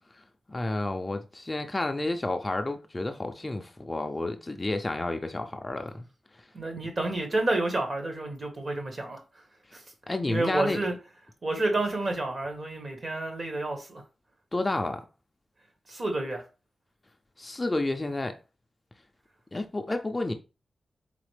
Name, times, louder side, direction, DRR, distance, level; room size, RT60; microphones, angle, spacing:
voice 1, 0.1-6.1 6.3-6.5 9.7-9.8 10.1-10.8 14.5-15.1 17.4-18.4 19.5-20.3, left 2 dB, 20° left, 0.4 m, -31 dB
voice 2, 6.5-9.2 9.7-9.8 10.3-10.9 11.4-14.0 15.9-16.4, right 2 dB, 40° right, 1.4 m, -29 dB
4.1 x 4.0 x 3.2 m
wide cardioid pair, 160°, 0 cm